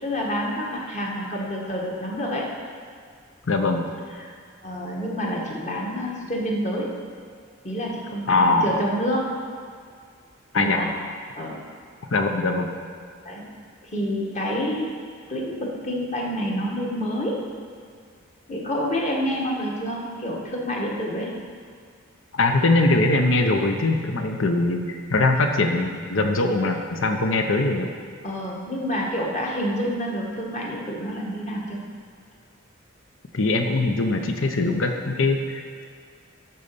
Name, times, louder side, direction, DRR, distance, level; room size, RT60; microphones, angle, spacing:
voice 1, 0.0-2.5 4.2-4.3 4.6-6.9 7.6-9.2 10.5-10.9 11.3-11.6 13.2-13.4 13.8-14.9 15.3-17.3 18.5-21.3 28.2-31.8, equal, 35° left, -3 dB, 1.6 m, -28 dB
voice 2, 3.5-3.8 8.3-8.7 10.5-10.8 12.1-12.7 22.3-27.9 33.3-35.8, left 2 dB, 70° left, 4 dB, 0.8 m, -22 dB
12.0 x 4.2 x 6.9 m, 2.1 s
head